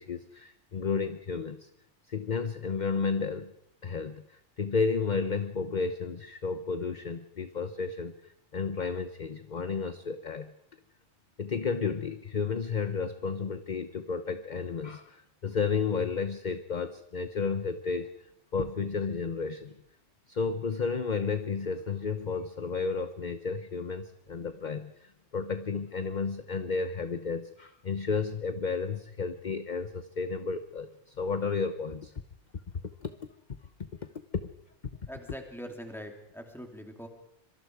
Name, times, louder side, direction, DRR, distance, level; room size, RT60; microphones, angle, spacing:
voice 1, 0.0-1.7 2.1-3.5 3.8-10.5 11.4-18.3 18.5-19.7 20.3-32.1 33.0-33.2, left 5 dB, 40° left, 10 dB, 1.0 m, -32 dB
voice 2, 35.1-37.1, equal, ahead, 3 dB, 3.3 m, -42 dB
25.5 x 24.0 x 4.8 m, 0.76 s
omnidirectional pair, 1.3 m